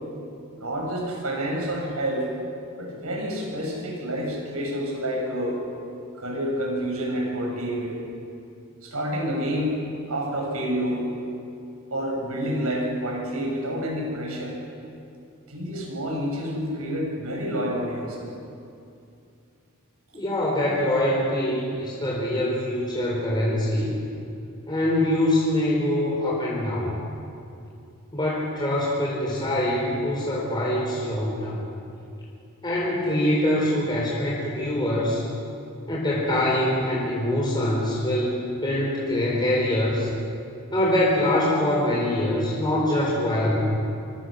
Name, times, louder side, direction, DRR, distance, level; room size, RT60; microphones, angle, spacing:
voice 1, 0.5-2.3 2.8-5.6 6.2-8.0 8.8-11.0 11.9-14.6 15.5-18.3, equal, 90° right, 0 dB, 7.1 m, -28 dB
voice 2, 20.1-23.9 24.7-27.0 28.1-31.6 32.6-35.2 35.9-40.1 40.7-43.8, left 1 dB, 20° left, -4 dB, 4.1 m, -24 dB
27.0 x 24.0 x 6.6 m, 2.6 s
head